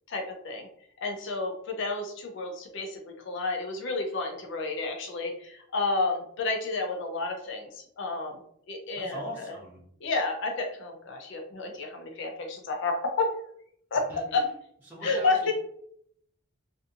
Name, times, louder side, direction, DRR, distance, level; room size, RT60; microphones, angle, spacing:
voice 1, 0.1-0.7 1.0-8.4 8.7-9.5 10.0-13.3 13.9-14.4 15.0-15.5, left 3 dB, 55° left, 3 dB, 0.4 m, -30 dB
voice 2, 8.9-9.8 14.1-14.4 14.9-15.5, equal, 10° right, -8 dB, 0.7 m, -41 dB
2.6 x 2.5 x 2.4 m, 0.68 s
head